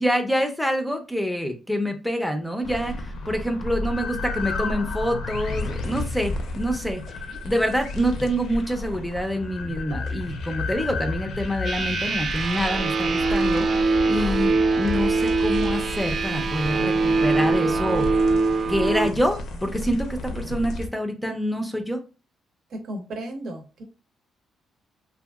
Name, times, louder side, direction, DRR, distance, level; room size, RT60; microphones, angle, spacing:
voice 1, 0.0-7.0 7.4-18.1 18.7-22.0, equal, 5° left, 5 dB, 0.5 m, -26 dB
sound 1, 2.6-20.9, left 2 dB, 70° left, 0.6 m, -32 dB
sound 2, 11.6-19.1, right 3 dB, 45° right, 0.4 m, -23 dB
voice 2, 22.7-23.8, right 1 dB, 65° right, 3 dB, 0.8 m, -34 dB
2.7 x 2.5 x 2.3 m, 0.32 s
cardioid pair, 90°, 0 cm